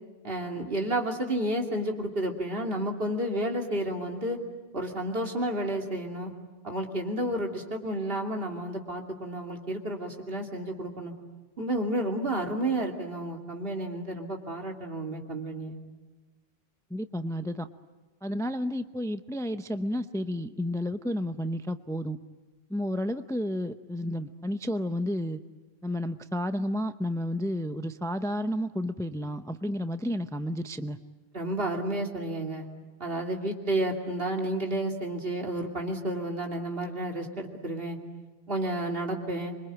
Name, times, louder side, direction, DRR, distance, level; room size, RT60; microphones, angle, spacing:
voice 1, 0.2-4.4 4.7-6.3 6.6-11.1 11.6-15.8 31.3-32.7 33.0-38.0 38.5-39.5, right 1 dB, 65° right, 2 dB, 3.0 m, -31 dB
voice 2, 16.9-17.7 18.2-22.2 22.7-25.4 25.8-31.0, equal, 5° left, 10 dB, 0.6 m, -31 dB
26.0 x 24.5 x 9.1 m, 1.2 s
omnidirectional pair, 1.0 m